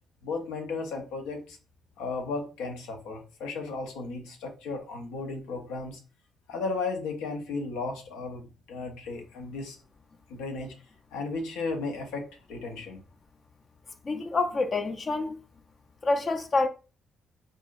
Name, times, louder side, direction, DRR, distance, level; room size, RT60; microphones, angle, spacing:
voice 1, 0.2-1.6 2.0-6.0 6.5-9.8 10.3-10.7 11.1-13.0, left 3 dB, 80° left, 0.8 m, -35 dB
voice 2, 14.0-15.3 16.0-16.7, left 3 dB, 45° left, 0.5 m, -27 dB
4.7 x 2.6 x 2.5 m
hypercardioid pair, 50°, 0 cm